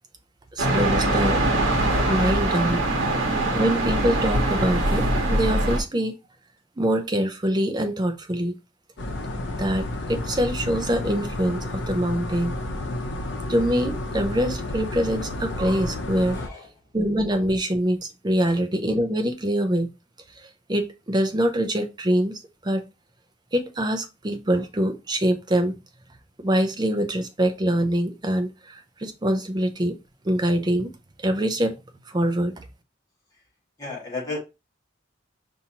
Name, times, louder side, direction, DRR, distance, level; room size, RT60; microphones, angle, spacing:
voice 1, 0.6-1.4 2.1-2.8 3.5-6.2 6.8-8.6 9.6-12.6 13.5-16.4 16.9-19.9 20.7-22.8 23.5-25.8 26.4-30.0 30.2-30.9 31.2-31.8 32.1-32.6, right 1 dB, 20° right, 0.5 m, -24 dB
sound 1, 0.6-5.8, right 1 dB, 75° right, 1.0 m, -22 dB
sound 2, 9.0-16.5, left 1 dB, 65° left, 0.7 m, -31 dB
voice 2, 16.3-16.7 18.4-18.6 33.8-34.4, left 3 dB, 20° left, 1.6 m, -33 dB
5.6 x 2.6 x 2.9 m
head